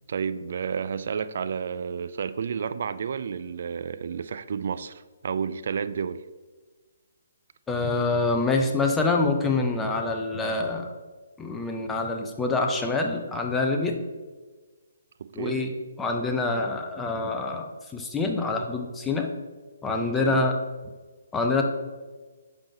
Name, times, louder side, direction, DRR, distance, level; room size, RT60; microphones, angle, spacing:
voice 1, 0.1-6.2 15.2-15.5 20.2-20.5, right 6 dB, 55° right, 13 dB, 0.4 m, -31 dB
voice 2, 7.7-10.9 11.4-14.0 15.3-19.3 19.8-20.5 21.3-21.6, left 3 dB, 10° left, 3 dB, 0.7 m, -26 dB
9.7 x 5.4 x 2.9 m, 1.4 s
figure-of-eight pair, 135°, 0 cm